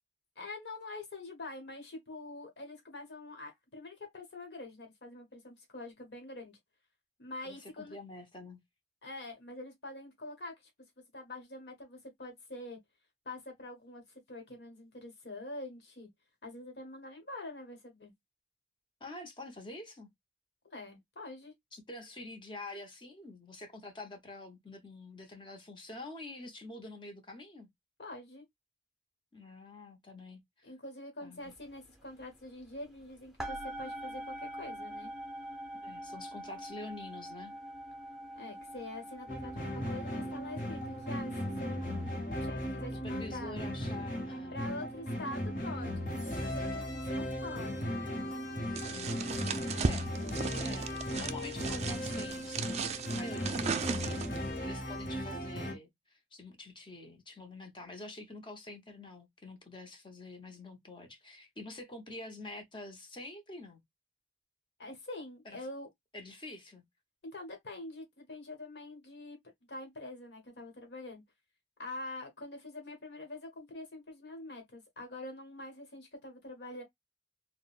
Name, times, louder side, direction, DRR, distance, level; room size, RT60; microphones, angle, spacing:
voice 1, 0.4-6.6 7.2-8.0 9.0-10.7 11.1-12.8 13.2-16.1 16.4-18.1 20.7-21.5 28.0-28.4 30.6-35.1 38.3-41.3 41.6-43.6 44.5-48.0 49.7-49.9 53.2-53.5 64.8-65.9 67.2-69.4 69.7-71.2 71.8-76.8, left 2 dB, 70° left, 1.2 m, -45 dB
voice 2, 7.4-8.6 19.0-20.1 21.7-27.7 29.3-30.7 31.2-31.5 35.8-37.5 43.0-44.6 48.9-49.2 49.8-50.3 50.6-52.8 53.1-63.8 65.4-65.6 66.1-66.8, left 2 dB, 30° left, 0.9 m, -47 dB
sound 1, 31.5-31.7 31.9-33.0 33.4-42.2, right 1 dB, ahead, 0.6 m, -44 dB
sound 2, 39.3-55.7, equal, 50° left, 1.1 m, -37 dB
sound 3, 48.8-54.5, right 5 dB, 40° right, 0.4 m, -36 dB
3.7 x 2.1 x 2.4 m
head